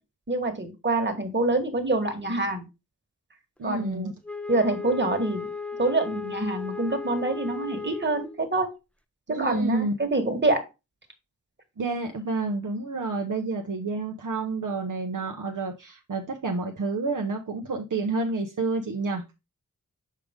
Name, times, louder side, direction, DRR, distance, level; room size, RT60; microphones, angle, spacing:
voice 1, 0.3-2.6 3.6-4.1 4.5-5.5 5.8-8.7 9.3-10.6, right 2 dB, 35° right, 5 dB, 1.6 m, -26 dB
voice 2, 3.6-4.1 9.3-10.0 11.8-19.4, right 3 dB, 65° right, 3 dB, 0.8 m, -29 dB
Wind instrument woodwind instrument, 4.2-8.5, left 4 dB, 5° left, 0.5 m, -35 dB
6.7 x 4.9 x 3.6 m, 0.26 s
wide cardioid pair, 85°, 33 cm